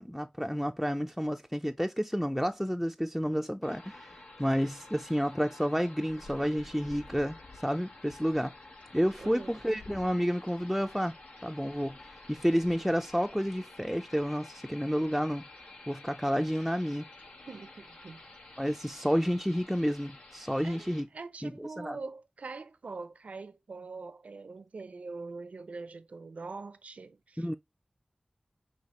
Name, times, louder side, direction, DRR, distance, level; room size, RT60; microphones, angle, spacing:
voice 1, 0.0-4.1 4.4-7.4 7.6-8.5 8.9-11.1 11.4-12.0 12.3-15.4 15.9-17.0 18.6-21.1 21.4-22.0 27.4-27.5, equal, ahead, 0.4 m, -30 dB
sound 1, 3.6-21.0, left 2 dB, 80° left, 1.1 m, -51 dB
voice 2, 9.2-9.5 17.5-18.2 20.6-27.5, right 3 dB, 80° right, 0.5 m, -43 dB
5.6 x 2.8 x 3.0 m
cardioid pair, 40°, 2 cm